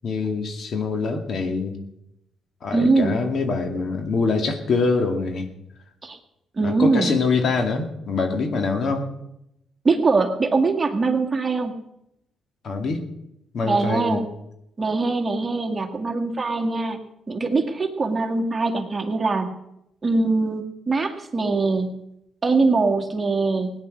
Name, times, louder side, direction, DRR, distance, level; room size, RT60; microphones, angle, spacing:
voice 1, 0.0-1.7 2.6-5.5 6.6-9.1 12.6-13.0 13.5-14.2, left 4 dB, 55° left, 5 dB, 2.4 m, -24 dB
voice 2, 2.7-3.3 6.0-6.2 6.5-7.2 9.8-11.8 13.6-14.3 14.8-17.0 17.3-19.6 20.0-21.9 22.4-23.7, right 3 dB, 25° right, 3 dB, 1.9 m, -22 dB
18.0 x 9.7 x 6.5 m, 0.83 s
cardioid pair, 90°, 0 cm